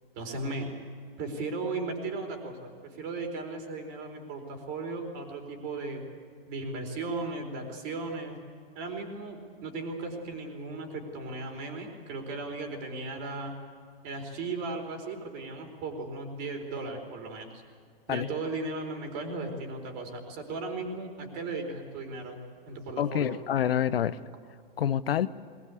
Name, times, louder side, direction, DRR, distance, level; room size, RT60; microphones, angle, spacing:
voice 1, 0.2-0.8 1.2-6.0 6.5-8.4 8.7-13.6 14.0-17.5 18.1-22.4 22.7-23.3, right 3 dB, 35° right, 4 dB, 4.3 m, -36 dB
voice 2, 23.0-24.2 24.8-25.3, left 10 dB, 80° left, 15 dB, 0.9 m, -27 dB
20.5 x 20.5 x 8.4 m, 2.1 s
hypercardioid pair, 140°, 29 cm